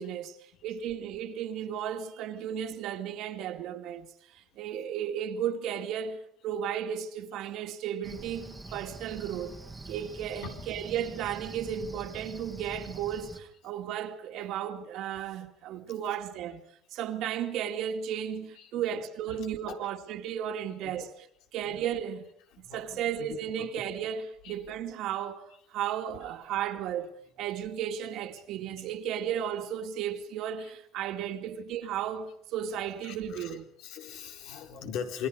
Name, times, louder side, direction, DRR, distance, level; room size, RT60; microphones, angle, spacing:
voice 1, 0.0-0.4 0.6-9.6 9.9-16.6 16.9-21.1 21.5-22.3 22.6-27.1 27.4-33.7, right 9 dB, 65° right, 2.4 m, -34 dB
Cricket, 8.0-13.4, right 2 dB, 10° right, 1.9 m, -45 dB
voice 2, 15.7-16.2 18.6-19.0 19.3-19.8 20.8-21.1 21.6-21.8 22.5-23.7 24.4-24.5 28.8-28.9 30.0-30.1 30.6-30.7 31.2-31.3 33.0-35.3, left 8 dB, 70° left, 4.0 m, -42 dB
28.0 x 22.5 x 5.1 m
cardioid pair, 150°, 0 cm